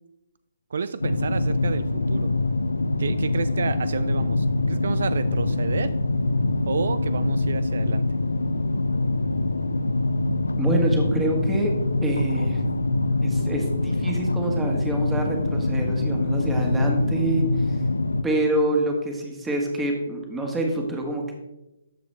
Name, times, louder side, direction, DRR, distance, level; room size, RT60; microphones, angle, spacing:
voice 1, 0.7-2.3 3.0-5.9 6.7-8.0, right 5 dB, 65° right, 13 dB, 0.3 m, -30 dB
sound 1, 1.0-18.2, left 2 dB, 85° left, 0.5 m, -24 dB
voice 2, 10.6-11.7 12.0-12.6 13.2-17.8 18.2-21.3, right 1 dB, 10° right, 1 dB, 1.6 m, -26 dB
13.5 x 4.8 x 3.3 m, 0.97 s
figure-of-eight pair, 140°, 0 cm